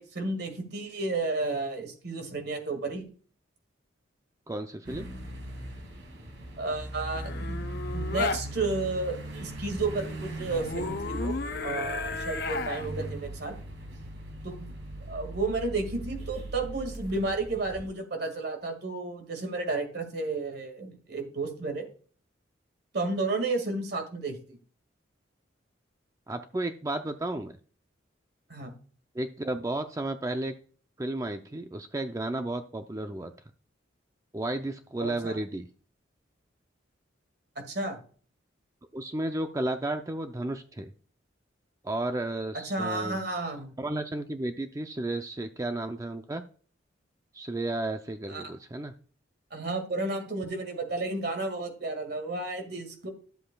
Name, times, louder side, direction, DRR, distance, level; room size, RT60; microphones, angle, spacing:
voice 1, 0.0-3.1 6.6-7.6 7.9-13.6 14.4-14.7 15.1-21.9 22.9-24.6 28.5-28.7 35.0-35.4 37.6-38.0 42.5-43.7 48.3-48.4 49.5-53.1, right 3 dB, 55° right, 6 dB, 1.9 m, -32 dB
voice 2, 4.5-5.1 26.3-27.5 29.1-30.6 31.0-33.3 34.3-35.7 38.9-40.9 41.8-43.2 43.8-46.4 47.3-48.9, right 2 dB, 15° right, 7 dB, 0.4 m, -33 dB
sound 1, 4.8-17.9, right 1 dB, 80° right, 2.5 m, -39 dB
sound 2, 7.1-8.4 10.4-12.9 16.9-17.2, left 4 dB, 55° left, 0.7 m, -34 dB
11.5 x 7.6 x 2.3 m, 0.42 s
head